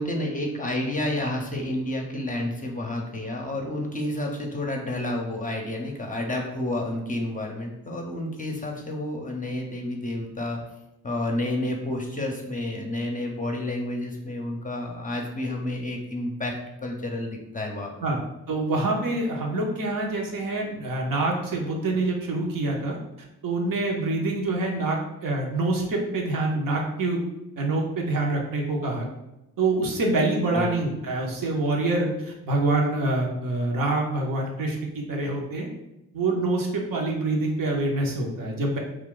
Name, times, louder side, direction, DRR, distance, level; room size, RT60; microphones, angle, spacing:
voice 1, 0.0-10.6 11.0-16.5 16.8-17.9 30.5-30.7, left 1 dB, 20° left, 1 dB, 0.6 m, -30 dB
voice 2, 18.5-23.0 23.4-27.2 27.6-29.1 29.6-35.7 36.1-38.8, right 2 dB, 60° right, 0 dB, 0.8 m, -26 dB
2.3 x 2.2 x 3.7 m, 0.93 s
hypercardioid pair, 40°, 38 cm